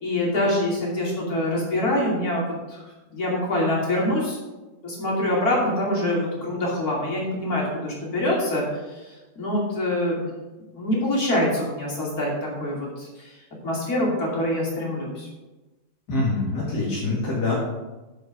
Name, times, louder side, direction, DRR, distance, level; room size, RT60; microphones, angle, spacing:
voice 1, 0.0-2.8 3.1-4.4 4.8-8.6 9.4-10.3 10.7-13.3 13.6-15.3, left 1 dB, 65° left, -4 dB, 3.4 m, -25 dB
voice 2, 16.1-17.5, left 2 dB, 90° left, -5 dB, 2.5 m, -25 dB
12.5 x 5.0 x 5.2 m, 1.1 s
omnidirectional pair, 1.7 m